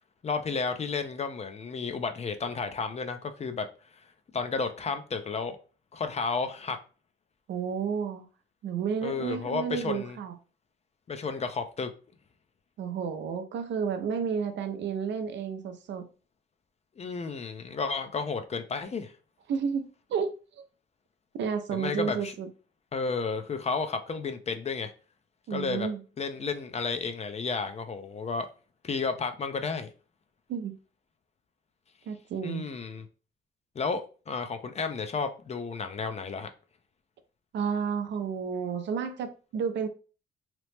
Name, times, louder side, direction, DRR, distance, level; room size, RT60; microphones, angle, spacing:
voice 1, 0.2-3.7 4.3-5.6 5.9-6.8 9.0-10.2 11.1-11.9 17.0-19.1 21.7-22.3 22.9-24.9 25.5-25.9 26.2-28.5 28.8-29.9 32.4-33.1 33.8-36.5, left 4 dB, 35° left, 0.4 m, -32 dB
voice 2, 7.5-8.3 8.6-10.3 12.8-16.0 19.5-20.7 21.3-22.5 25.5-26.0 30.5-30.7 32.1-32.7 37.5-39.9, right 6 dB, 65° right, 0.5 m, -31 dB
2.9 x 2.0 x 3.2 m
cardioid pair, 90°, 20 cm